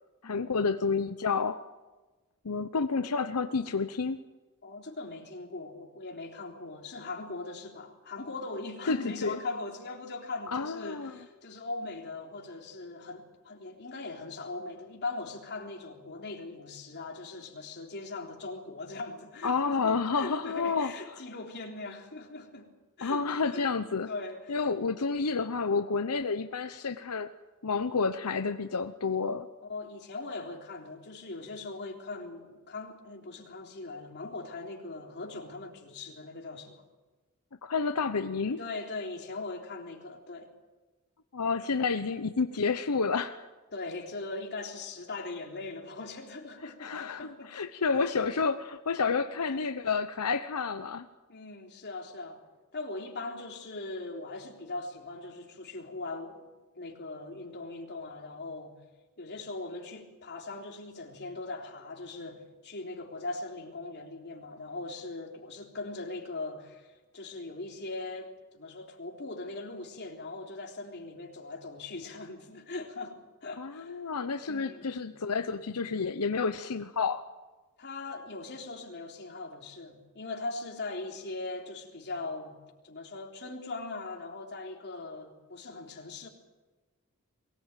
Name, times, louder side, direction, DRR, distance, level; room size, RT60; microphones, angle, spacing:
voice 1, 0.2-1.6 2.4-4.2 8.9-9.4 10.5-11.1 19.4-20.9 23.0-24.1 24.5-27.3 27.6-29.5 37.6-38.6 41.3-43.5 46.8-51.1 73.6-77.2, left 4 dB, 90° left, 9 dB, 0.9 m, -30 dB
voice 2, 4.6-22.7 23.0-23.7 24.1-24.6 29.6-36.8 38.6-40.5 43.7-47.5 47.9-48.1 49.4-49.6 51.3-52.4 52.7-56.5 56.8-58.7 59.2-74.0 74.5-74.8 77.8-82.6 82.8-86.3, left 3 dB, 50° left, 1 dB, 3.7 m, -40 dB
23.0 x 19.0 x 9.1 m, 1.2 s
head